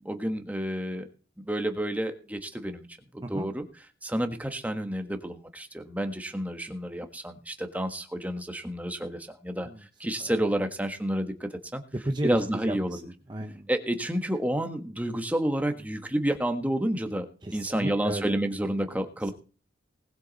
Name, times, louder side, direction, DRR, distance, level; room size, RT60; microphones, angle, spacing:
voice 1, 0.0-1.1 1.4-2.9 3.1-3.6 4.0-9.7 10.0-11.8 12.2-13.0 13.7-19.3, right 1 dB, 10° right, 6 dB, 1.4 m, -30 dB
voice 2, 11.9-13.0 13.3-13.7 17.4-18.4, right 1 dB, 25° right, 5 dB, 0.8 m, -33 dB
19.5 x 7.7 x 4.1 m, 0.37 s
head